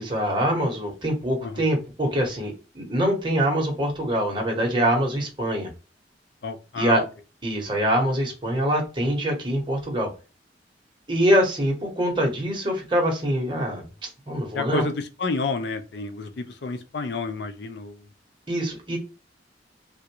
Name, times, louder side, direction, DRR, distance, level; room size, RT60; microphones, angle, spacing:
voice 1, 0.0-5.7 6.8-7.0 7.4-10.1 11.1-14.9 18.5-19.0, equal, 25° right, 1.1 m, -24 dB
voice 2, 6.4-7.1 14.5-18.1, left 4 dB, 70° left, 0.5 m, -30 dB
3.5 x 2.4 x 2.8 m
head